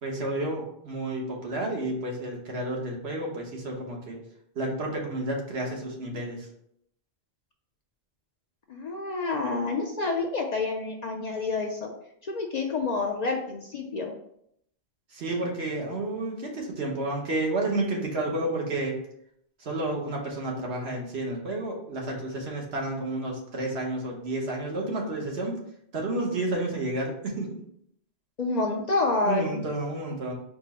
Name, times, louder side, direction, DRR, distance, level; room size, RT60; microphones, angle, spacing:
voice 1, 0.0-4.2 4.5-6.5 15.1-19.0 19.6-25.6 25.9-27.6 29.2-30.3, right 2 dB, 80° right, -1 dB, 1.3 m, -31 dB
voice 2, 8.7-11.9 12.2-14.1 28.4-29.6, left 3 dB, 55° left, 2 dB, 0.5 m, -28 dB
4.3 x 2.0 x 4.2 m, 0.72 s
omnidirectional pair, 1.0 m